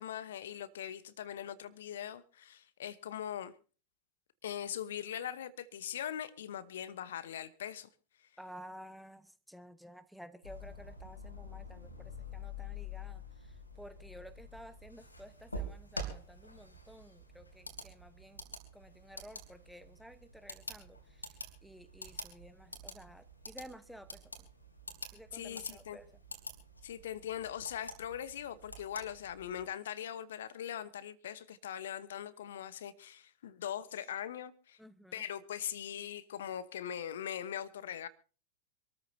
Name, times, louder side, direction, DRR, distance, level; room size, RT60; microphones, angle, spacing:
voice 1, 0.0-3.5 4.4-7.9 25.3-26.0 26.8-34.8 35.1-38.1, left 10 dB, 60° left, 1.0 m, -41 dB
voice 2, 8.4-18.4 18.7-24.3 25.1-26.1 34.8-35.2, equal, ahead, 1.1 m, -53 dB
sound 1, 10.4-29.6, left 1 dB, 85° left, 3.2 m, -47 dB
26.5 x 13.5 x 2.7 m
figure-of-eight pair, 90°, 0 cm